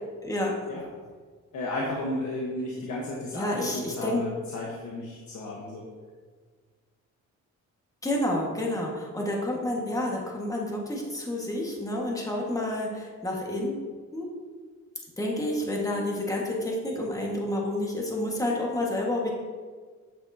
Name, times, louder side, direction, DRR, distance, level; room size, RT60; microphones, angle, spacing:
voice 1, 0.2-0.6 3.3-4.3 8.0-13.8 14.1-14.3 15.2-19.3, left 1 dB, 10° left, -2 dB, 1.7 m, -29 dB
voice 2, 1.5-5.9, left 1 dB, 70° left, -3 dB, 1.4 m, -33 dB
8.9 x 6.9 x 2.8 m, 1.5 s
cardioid pair, 90°, 30 cm